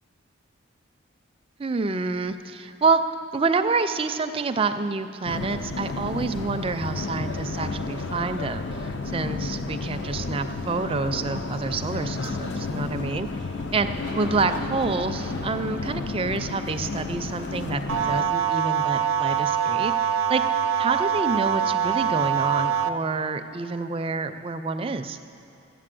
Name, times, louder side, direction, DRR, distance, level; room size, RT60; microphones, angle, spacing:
voice 1, 1.6-3.0 3.3-8.7 9.1-13.3 13.7-13.9 14.1-19.9 20.3-20.4 20.8-25.2, right 4 dB, 25° right, 9 dB, 0.4 m, -27 dB
sound 1, 5.2-18.2, left 3 dB, 55° left, 0.6 m, -32 dB
Aircraft, 13.8-20.5, left 1 dB, 85° left, 1.2 m, -42 dB
sound 2, 17.9-22.9, right 9 dB, 85° right, 0.5 m, -24 dB
13.0 x 8.1 x 7.6 m, 2.7 s
head